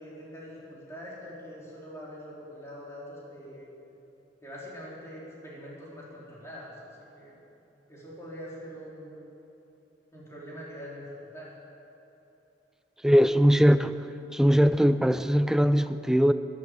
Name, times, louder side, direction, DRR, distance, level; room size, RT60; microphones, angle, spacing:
voice 1, 0.0-3.7 4.4-7.4 7.9-9.2 10.1-11.5, equal, 15° left, -6 dB, 3.7 m, -43 dB
voice 2, 13.0-13.9 14.3-16.3, equal, 5° right, 11 dB, 0.4 m, -21 dB
12.5 x 10.5 x 7.9 m, 2.9 s
head